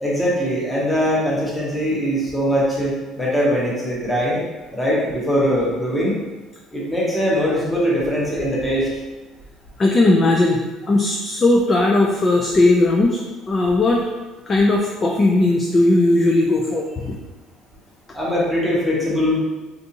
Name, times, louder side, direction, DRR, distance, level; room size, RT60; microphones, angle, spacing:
voice 1, 0.0-4.4 4.7-6.1 6.7-8.9 18.1-19.4, equal, 10° left, -5 dB, 0.9 m, -21 dB
voice 2, 9.8-10.6 10.9-13.2 13.5-14.0 14.5-17.1, left 2 dB, 25° left, 0 dB, 0.3 m, -17 dB
3.5 x 2.6 x 2.8 m, 1.2 s
cardioid pair, 140°, 0 cm